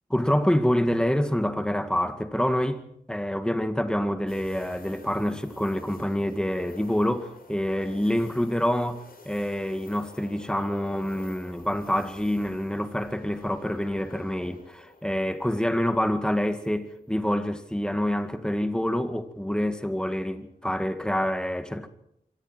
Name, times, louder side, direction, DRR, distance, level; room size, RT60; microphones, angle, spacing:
voice 1, 0.1-2.8 3.1-21.9, equal, 5° left, 2.1 m, -27 dB
sound 1, 4.3-17.3 17.7-17.8 20.2-20.6, left 3 dB, 85° left, 4.9 m, -50 dB
26.5 x 24.0 x 4.7 m
wide cardioid pair, 85°, 15 cm